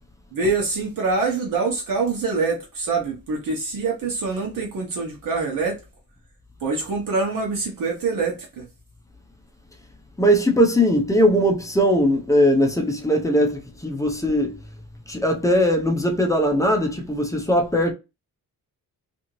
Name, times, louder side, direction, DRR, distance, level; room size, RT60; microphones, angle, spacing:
voice 1, 0.3-5.8 6.6-8.6, right 4 dB, 65° right, 0.9 m, -25 dB
voice 2, 10.2-14.6 15.1-17.9, equal, 10° left, 0.5 m, -20 dB
2.7 x 2.6 x 2.9 m
wide cardioid pair, 160°, 35 cm